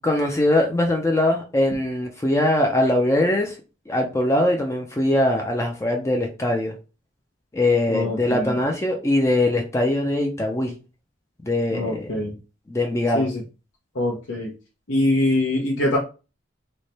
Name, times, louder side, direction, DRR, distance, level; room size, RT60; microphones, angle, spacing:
voice 1, 0.0-3.6 3.9-6.8 7.5-10.7 11.4-12.2 12.7-13.3, left 1 dB, 15° left, 2 dB, 0.4 m, -21 dB
voice 2, 7.9-8.5 11.7-12.3 13.1-13.4 14.0-14.5 14.9-16.0, left 1 dB, 80° left, -2 dB, 0.8 m, -23 dB
3.2 x 2.1 x 4.0 m, 0.32 s
head